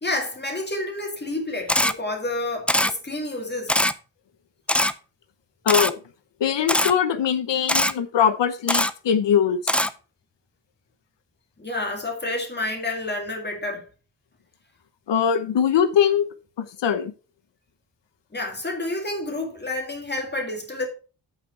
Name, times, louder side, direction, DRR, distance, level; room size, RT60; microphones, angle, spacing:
voice 1, 0.0-3.8 11.6-13.9 18.3-20.9, left 2 dB, 25° left, 2.1 m, -29 dB
Camera, 1.7-1.9 2.7-2.9 3.7-3.9 4.7-4.9 5.7-5.9 6.7-6.9 7.7-7.9 8.7-8.9 9.7-9.9, left 1 dB, 5° left, 0.3 m, -20 dB
voice 2, 5.6-6.0 6.4-9.7 15.1-16.3 16.6-17.1, left 8 dB, 85° left, 1.0 m, -21 dB
8.7 x 5.4 x 5.6 m
wide cardioid pair, 160°, 42 cm